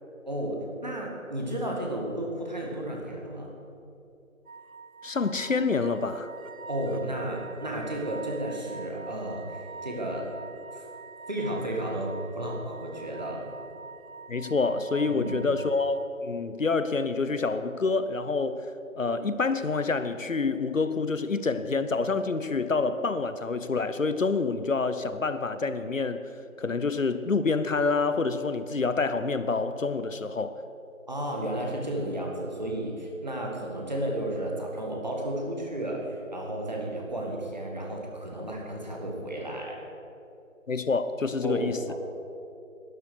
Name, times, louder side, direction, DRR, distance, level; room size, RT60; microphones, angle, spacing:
voice 1, 0.2-3.5 6.7-10.3 10.7-10.8 11.3-13.4 15.0-15.4 31.1-39.8 41.4-41.9, right 1 dB, 30° right, -1 dB, 1.9 m, -33 dB
sound 1, 4.5-16.1, right 4 dB, 80° right, 0.8 m, -45 dB
voice 2, 5.0-6.3 14.3-18.7 19.0-26.2 26.6-30.6 40.7-41.9, left 4 dB, 70° left, 11 dB, 0.8 m, -27 dB
12.0 x 10.5 x 6.5 m, 2.8 s
figure-of-eight pair, 175°, 41 cm